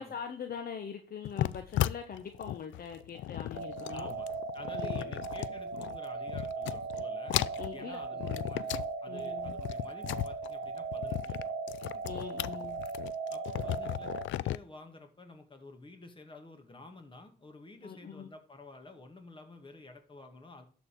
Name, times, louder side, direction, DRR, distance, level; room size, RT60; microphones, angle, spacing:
voice 1, 0.0-4.1 4.7-5.1 7.6-8.4 9.1-9.6 12.0-12.8 17.8-18.3, left 7 dB, 50° left, 5 dB, 1.1 m, -43 dB
sound 1, 1.2-6.0 6.3-7.0 7.3-8.9 9.2-14.6, left 13 dB, 75° left, 0.4 m, -35 dB
sound 2, 3.5-14.2, right 4 dB, 50° right, 1.4 m, -38 dB
voice 2, 3.9-4.3 4.5-7.4 7.7-11.4 11.9-12.1 13.3-20.6, left 3 dB, 25° left, 5 dB, 2.2 m, -51 dB
12.0 x 4.2 x 6.7 m, 0.43 s
cardioid pair, 90°, 20 cm